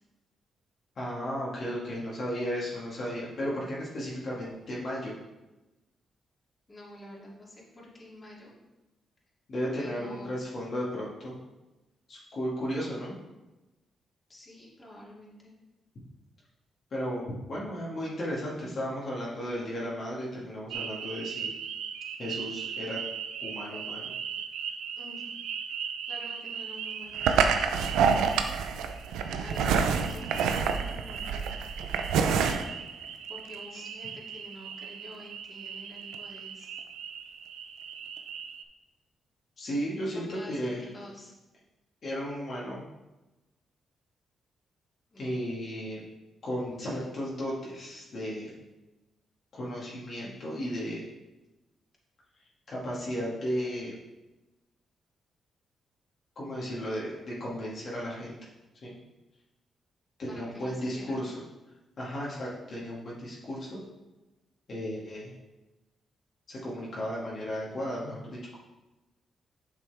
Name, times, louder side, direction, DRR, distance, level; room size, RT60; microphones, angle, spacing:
voice 1, 1.0-5.1 9.5-11.3 12.1-13.1 16.9-21.5 22.2-23.0 23.4-24.1 33.7-33.9 39.6-40.8 42.0-42.8 45.2-46.0 46.4-48.5 49.5-51.0 52.7-53.9 56.4-58.4 58.8-58.9 60.2-61.3 62.0-63.8 64.7-65.3 66.5-68.6, equal, 55° left, -6 dB, 2.1 m, -34 dB
voice 2, 6.7-8.5 9.8-10.3 14.3-15.5 25.0-25.3 26.1-28.4 29.4-31.5 33.3-36.7 40.1-41.3 45.1-45.5 60.3-61.2, left 1 dB, 25° left, -5 dB, 2.7 m, -47 dB
sound 1, 20.7-38.6, right 6 dB, 90° right, 0.5 m, -31 dB
7.7 x 6.0 x 3.5 m, 1.0 s
supercardioid pair, 60°, 0 cm